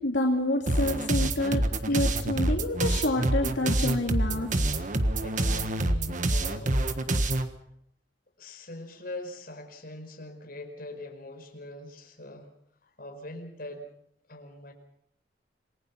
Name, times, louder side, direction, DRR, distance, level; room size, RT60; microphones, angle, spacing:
voice 1, 0.0-4.6, left 1 dB, 80° left, 1 dB, 2.6 m, -28 dB
sound 1, 0.7-7.5, right 1 dB, 45° right, 1.5 m, -26 dB
voice 2, 5.2-6.9 8.4-12.5 12.8-13.9 14.3-14.7, left 1 dB, 55° left, 3 dB, 4.9 m, -42 dB
28.0 x 20.0 x 5.9 m, 0.71 s
head